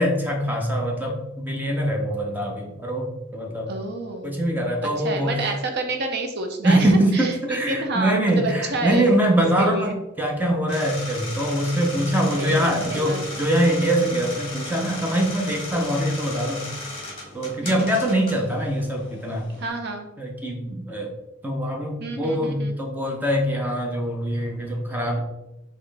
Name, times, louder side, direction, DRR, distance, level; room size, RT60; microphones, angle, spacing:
voice 1, 0.0-3.7 4.2-5.4 6.6-9.9 10.2-16.7 17.3-19.5 20.2-21.1 21.4-25.2, right 1 dB, 10° right, 1 dB, 0.6 m, -23 dB
voice 2, 3.7-4.5 4.8-10.0 12.3-13.4 17.6-17.9 19.6-20.1 22.0-22.7, right 2 dB, 50° right, 4 dB, 0.6 m, -29 dB
sound 1, 10.7-19.7, left 2 dB, 25° left, 1.3 m, -36 dB
4.1 x 3.1 x 3.3 m, 0.94 s
head